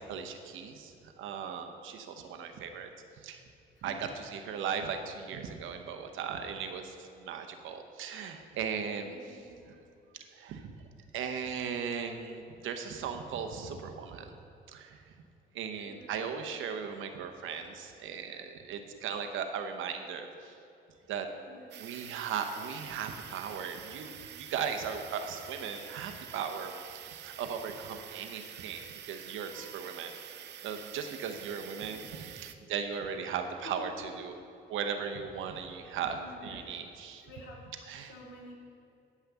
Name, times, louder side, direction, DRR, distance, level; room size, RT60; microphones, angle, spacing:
voice 1, 0.1-2.9 3.2-3.4 3.8-9.4 10.3-10.7 11.1-14.4 14.7-15.0 15.5-20.5 21.1-21.3 21.8-30.1 30.6-34.4 34.7-37.3 37.9-38.1, right 7 dB, 85° right, 6 dB, 0.9 m, -37 dB
voice 2, 2.1-2.5 3.7-3.9 9.0-9.7 15.8-16.3 21.5-21.8 29.5-30.2 33.6-33.9 36.1-36.8 37.3-37.6 38.1-38.5, left 2 dB, 70° left, -3 dB, 2.5 m, -51 dB
sound 1, 21.7-32.6, right 10 dB, 60° right, 0.5 m, -47 dB
9.3 x 5.8 x 6.9 m, 2.6 s
cardioid pair, 90°, 20 cm